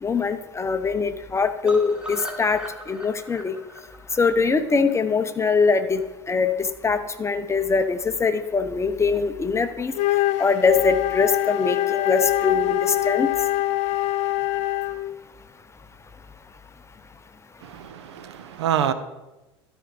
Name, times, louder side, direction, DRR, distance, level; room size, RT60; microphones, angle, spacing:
voice 1, 0.0-3.6 4.2-6.0 6.3-6.5 6.8-9.9 10.4-13.3, left 4 dB, 20° left, 10 dB, 0.8 m, -22 dB
sound 1, 1.7-5.7 6.0-6.1 6.4-6.5 6.8-6.9, equal, 5° right, 1.8 m, -39 dB
Wind instrument woodwind instrument, 9.9-15.1, left 15 dB, 55° left, 0.5 m, -24 dB
voice 2, 17.6-18.9, right 9 dB, 75° right, 12 dB, 0.7 m, -26 dB
12.5 x 4.5 x 5.2 m, 1.0 s
hypercardioid pair, 75°, 14 cm